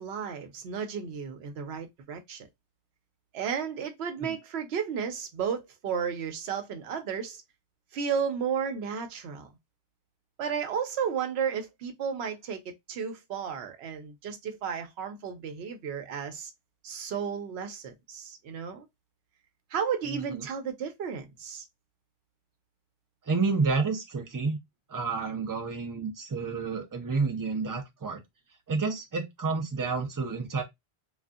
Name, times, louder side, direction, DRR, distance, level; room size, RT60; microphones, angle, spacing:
voice 1, 0.0-2.5 3.3-7.4 7.9-9.5 10.4-16.5 16.8-18.9 19.7-21.6, right 7 dB, 80° right, 0.9 m, -33 dB
voice 2, 20.1-20.4 23.3-24.6 24.9-28.2 28.7-30.6, right 4 dB, 25° right, 0.4 m, -30 dB
2.5 x 2.3 x 2.3 m
omnidirectional pair, 1.1 m